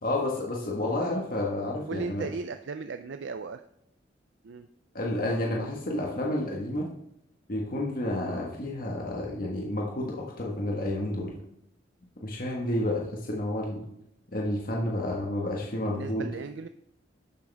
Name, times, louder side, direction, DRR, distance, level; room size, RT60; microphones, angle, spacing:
voice 1, 0.0-2.2 4.9-6.9 7.5-11.4 12.2-13.8 14.3-16.3, left 1 dB, 50° left, -2 dB, 1.5 m, -30 dB
voice 2, 1.9-3.6 4.4-4.7 15.8-16.7, right 4 dB, 65° right, 9 dB, 0.5 m, -36 dB
11.5 x 8.4 x 3.5 m, 0.78 s
head